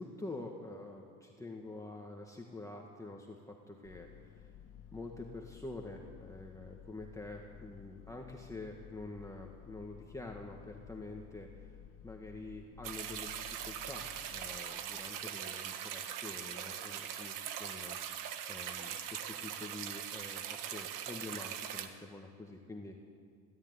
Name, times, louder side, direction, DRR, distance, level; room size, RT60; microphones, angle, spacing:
voice 1, 0.0-4.3 4.9-11.7 12.0-14.1 14.3-18.0 18.5-23.0, left 2 dB, 10° left, 1 dB, 1.8 m, -47 dB
sound 1, 3.8-14.6, left 9 dB, 75° left, 1.9 m, -54 dB
sound 2, 12.8-21.9, right 9 dB, 85° right, 1.4 m, -41 dB
21.5 x 13.0 x 9.8 m, 2.1 s
cardioid pair, 110°, 31 cm